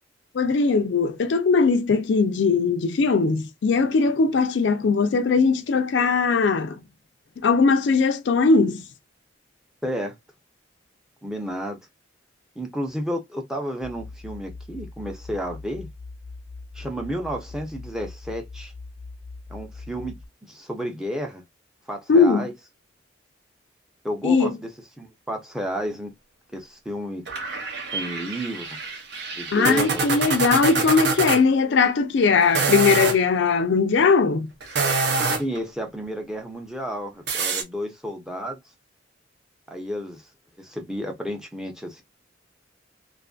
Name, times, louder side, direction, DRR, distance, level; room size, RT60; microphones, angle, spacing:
voice 1, 0.3-6.8 7.4-8.8 22.1-22.4 24.2-24.5 29.5-34.5, left 4 dB, 65° left, 0.4 m, -20 dB
voice 2, 9.8-10.2 11.2-11.8 12.6-15.9 16.7-18.7 19.5-20.2 20.4-21.4 21.9-22.5 24.0-24.7 25.0-26.1 26.5-27.2 27.9-28.7 29.4-30.0 35.4-38.6 39.7-40.2 40.6-42.0, equal, 5° right, 0.6 m, -31 dB
sound 1, 13.8-20.3, left 3 dB, 80° right, 1.2 m, -41 dB
sound 2, 27.3-31.4 32.4-33.2 34.6-35.6 37.3-37.6, right 4 dB, 60° right, 0.7 m, -26 dB
2.5 x 2.5 x 2.3 m
head